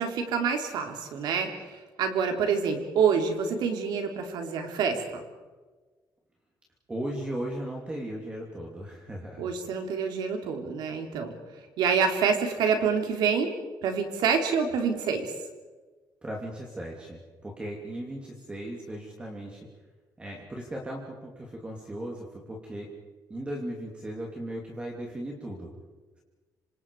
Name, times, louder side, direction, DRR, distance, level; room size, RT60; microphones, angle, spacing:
voice 1, 0.0-5.2 9.4-11.3 11.8-13.5 13.8-15.3, right 6 dB, 90° right, 5 dB, 3.6 m, -27 dB
voice 2, 6.9-9.5 16.2-19.7 20.2-22.9 23.3-25.7, right 1 dB, 15° right, -1 dB, 2.8 m, -37 dB
27.5 x 25.5 x 4.9 m, 1.3 s
cardioid pair, 170°, 7 cm